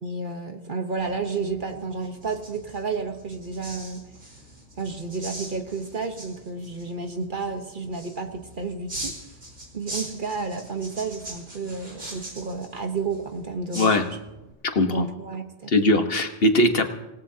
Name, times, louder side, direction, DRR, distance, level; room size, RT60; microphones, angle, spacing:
voice 1, 0.0-4.0 4.8-9.1 9.7-14.1 14.9-15.7, right 4 dB, 50° right, 5 dB, 1.2 m, -31 dB
sound 1, 0.9-14.5, right 1 dB, 85° right, 4.7 m, -42 dB
voice 2, 14.7-15.1 15.7-16.9, left 1 dB, 60° left, 6 dB, 1.5 m, -20 dB
26.5 x 17.5 x 2.8 m, 1.0 s
omnidirectional pair, 1.2 m